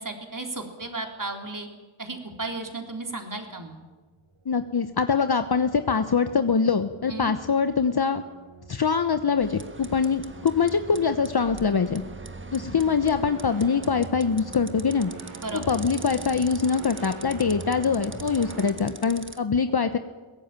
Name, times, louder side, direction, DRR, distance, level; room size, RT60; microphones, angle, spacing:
voice 1, 0.0-1.7 2.0-3.8 7.1-7.3 15.4-15.7, right 3 dB, 40° right, 4 dB, 4.0 m, -34 dB
sound 1, 4.2-18.7, right 4 dB, 80° right, 3.1 m, -43 dB
voice 2, 4.5-8.2 8.7-12.0 12.5-15.1 15.5-20.0, left 5 dB, 50° left, 9 dB, 1.1 m, -24 dB
sound 2, 9.4-19.4, right 2 dB, 25° right, 1.4 m, -43 dB
22.0 x 17.0 x 9.1 m, 1.3 s
cardioid pair, 55°, 49 cm